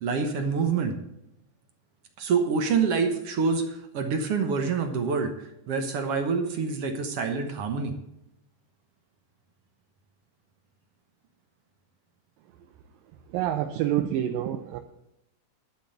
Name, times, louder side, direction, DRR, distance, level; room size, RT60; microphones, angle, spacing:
voice 1, 0.0-1.0 2.2-7.9, right 5 dB, 65° right, 5 dB, 1.5 m, -26 dB
voice 2, 13.3-14.8, right 11 dB, 85° right, 4 dB, 2.5 m, -27 dB
11.5 x 5.3 x 7.9 m, 0.84 s
omnidirectional pair, 4.0 m